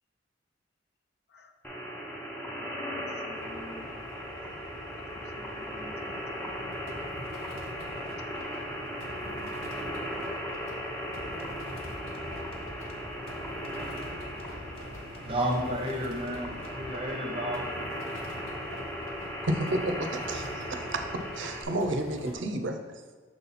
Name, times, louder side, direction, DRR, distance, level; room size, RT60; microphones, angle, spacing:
sound 1, 1.6-21.6, equal, 10° left, 0.6 m, -37 dB
voice 1, 2.8-4.0 5.1-6.8 9.2-10.0, left 3 dB, 50° left, 6 dB, 0.5 m, -50 dB
sound 2, 3.3-22.4, left 1 dB, 85° left, 0.9 m, -45 dB
sound 3, 11.0-17.0, equal, 30° left, 0.9 m, -48 dB
voice 2, 15.2-17.7, equal, 25° right, 1 dB, 0.8 m, -31 dB
voice 3, 19.4-22.8, right 1 dB, 65° right, 5 dB, 0.6 m, -31 dB
6.2 x 4.1 x 4.1 m, 1.4 s
head